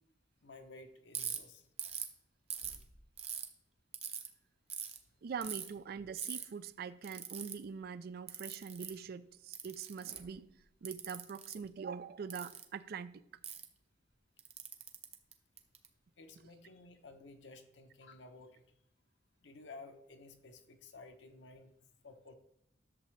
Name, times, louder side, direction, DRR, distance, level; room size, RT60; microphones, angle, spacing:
voice 1, 0.4-1.7 16.2-18.6 19.4-21.7 22.0-22.3, left 3 dB, 70° left, 0.9 m, -54 dB
Ratchet pawl, 1.1-1.4 1.8-2.1 2.5-3.5 3.9-4.3 4.7-5.0 5.4-5.7 6.2-6.4 7.0-7.5 8.3-8.9 9.5-10.3 10.8-11.5 12.3-12.6 13.4-13.6 14.4-15.9, right 8 dB, 35° right, 0.8 m, -41 dB
voice 2, 5.2-10.5 10.8-13.2, right 6 dB, 55° right, 0.4 m, -43 dB
11.0 x 6.8 x 3.2 m
head